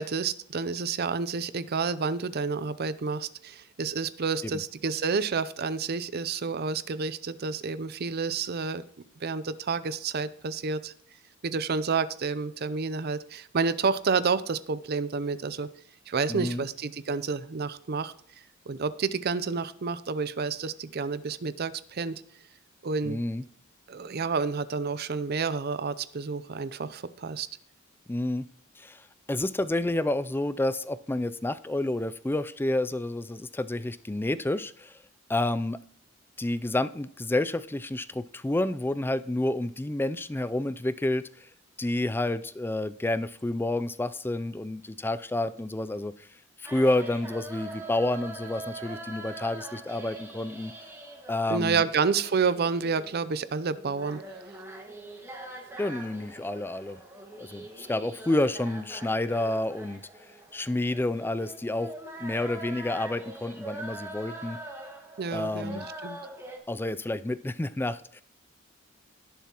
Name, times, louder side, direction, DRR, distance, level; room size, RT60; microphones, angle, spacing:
voice 1, 0.0-8.8 9.2-10.9 11.4-15.7 16.1-18.1 18.7-22.2 22.8-23.2 23.9-27.5 51.5-54.2 65.2-66.2, right 5 dB, 50° right, 14 dB, 0.6 m, -29 dB
voice 2, 16.3-16.7 23.0-23.4 28.1-28.4 28.8-35.0 35.3-35.8 36.4-41.5 41.8-46.3 46.6-50.7 51.3-51.8 55.8-57.0 57.4-60.0 60.5-61.9 62.2-64.6 65.3-65.9 66.7-68.2, left 1 dB, 10° left, 14 dB, 0.3 m, -29 dB
sound 1, 46.6-66.6, right 1 dB, 15° right, 1.7 m, -43 dB
18.5 x 7.1 x 2.9 m, 0.62 s
head